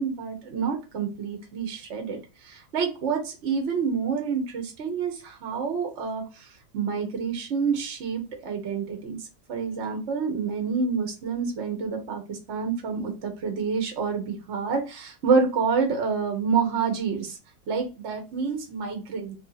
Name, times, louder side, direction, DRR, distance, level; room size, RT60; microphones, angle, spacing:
voice 1, 0.0-2.2 2.5-6.2 6.7-9.2 9.5-17.3 17.7-19.3, right 5 dB, 50° right, 3 dB, 1.1 m, -28 dB
3.1 x 2.7 x 3.9 m, 0.30 s
omnidirectional pair, 1.6 m